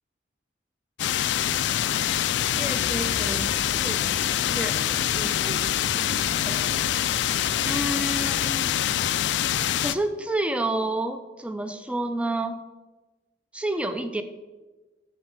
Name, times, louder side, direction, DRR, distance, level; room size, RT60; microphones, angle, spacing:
sound 1, 1.0-10.0, left 11 dB, 70° left, 0.3 m, -25 dB
voice 1, 2.6-4.2 4.5-6.7 7.7-8.7 9.8-12.6 13.5-14.2, right 1 dB, 5° right, 9 dB, 0.4 m, -30 dB
sound 2, 2.7-8.5, right 1 dB, 30° right, 0.8 m, -42 dB
7.7 x 4.3 x 6.3 m, 1.2 s
head